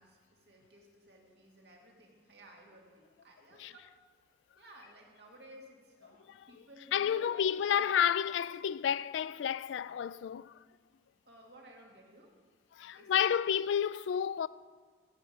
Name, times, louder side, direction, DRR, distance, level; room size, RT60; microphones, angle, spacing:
voice 1, 0.0-3.9 4.6-7.9 11.3-12.4 12.9-13.3, right 1 dB, 60° right, 2.0 m, -57 dB
voice 2, 6.9-10.5 12.7-14.5, left 8 dB, 80° left, 0.3 m, -30 dB
14.5 x 5.1 x 8.1 m
head